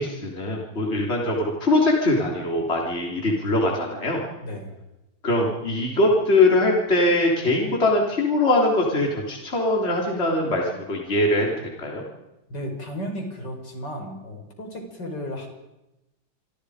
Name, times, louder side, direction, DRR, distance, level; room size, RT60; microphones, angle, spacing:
voice 1, 0.0-4.2 5.2-12.0, left 2 dB, 30° left, -1 dB, 3.9 m, -22 dB
voice 2, 4.4-4.8 12.5-15.5, equal, 60° left, 3 dB, 5.7 m, -34 dB
28.5 x 24.5 x 5.1 m, 0.95 s
omnidirectional pair, 2.1 m